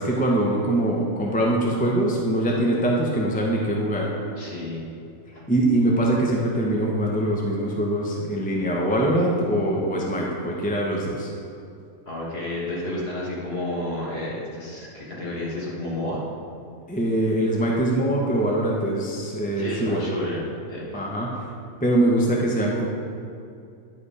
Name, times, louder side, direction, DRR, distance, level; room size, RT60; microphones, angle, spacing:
voice 1, 0.0-4.1 5.5-11.3 16.9-20.1 20.9-21.3 21.8-22.9, right 1 dB, 10° left, -2 dB, 0.7 m, -23 dB
voice 2, 4.4-4.9 5.3-5.4 12.1-16.2 19.6-21.1, left 1 dB, 45° left, -5 dB, 1.9 m, -31 dB
10.0 x 4.8 x 5.0 m, 2.5 s
omnidirectional pair, 1.5 m